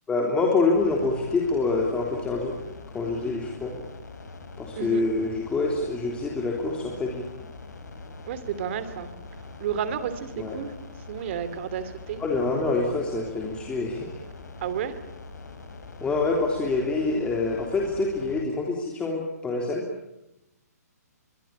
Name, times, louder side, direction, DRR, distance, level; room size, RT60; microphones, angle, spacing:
voice 1, 0.1-2.5 2.9-3.7 4.6-7.2 10.4-10.6 12.2-14.1 16.0-19.8, left 3 dB, 10° left, -1 dB, 3.4 m, -26 dB
sound 1, 0.7-18.4, left 3 dB, 85° left, 5.0 m, -43 dB
voice 2, 8.3-9.1 9.6-10.7 11.1-12.2 14.6-15.0, right 8 dB, 45° right, 12 dB, 2.8 m, -31 dB
23.5 x 22.5 x 8.7 m, 0.87 s
hypercardioid pair, 145°, 9 cm